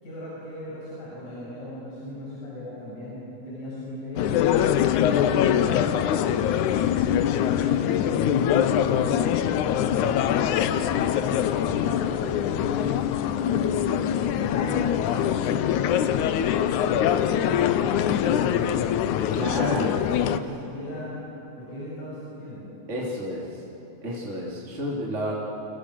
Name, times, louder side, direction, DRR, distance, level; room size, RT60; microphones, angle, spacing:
voice 1, 0.0-4.5 5.0-13.6 14.2-21.2 21.6-22.7, left 1 dB, 65° left, -7 dB, 7.7 m, -38 dB
sound 1, 4.2-20.4, left 10 dB, 90° left, 2.3 m, -23 dB
voice 2, 19.4-20.2 22.9-23.6 24.0-25.3, equal, 25° right, -4 dB, 3.3 m, -30 dB
29.5 x 27.5 x 6.5 m, 3.0 s
omnidirectional pair, 3.4 m